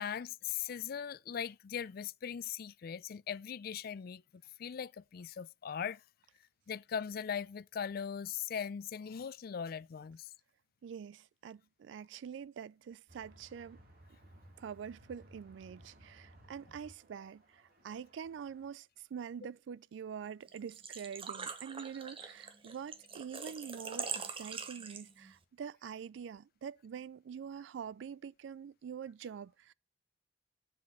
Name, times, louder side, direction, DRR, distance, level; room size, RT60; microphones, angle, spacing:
voice 1, 0.0-6.0 6.7-10.3, left 8 dB, 55° left, 0.4 m, -40 dB
voice 2, 10.8-13.8 14.6-29.7, right 7 dB, 80° right, 0.3 m, -45 dB
sound 1, 13.1-18.7, right 1 dB, 55° right, 2.2 m, -60 dB
Engine / Trickle dribble / Fill (with liquid), 20.5-25.3, right 6 dB, 30° right, 0.9 m, -43 dB
7.6 x 4.1 x 6.2 m
head